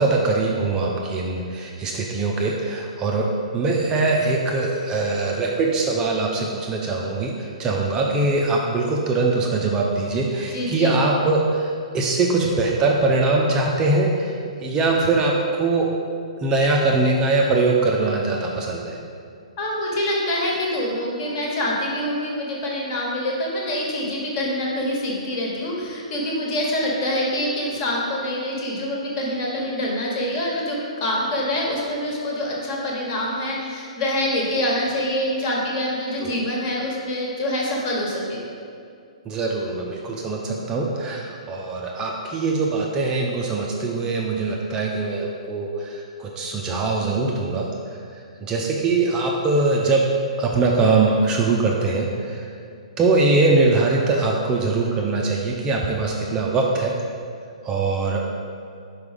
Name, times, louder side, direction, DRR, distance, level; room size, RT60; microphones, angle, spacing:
voice 1, 0.0-14.4 14.6-16.0 16.4-19.0 36.2-36.4 39.3-50.1 50.4-52.5 53.0-57.0 57.6-58.2, right 3 dB, 20° right, -1 dB, 0.5 m, -22 dB
voice 2, 10.5-10.9 19.6-38.4, left 1 dB, 35° left, -2 dB, 1.4 m, -25 dB
4.7 x 4.7 x 5.0 m, 2.4 s
figure-of-eight pair, 120°, 4 cm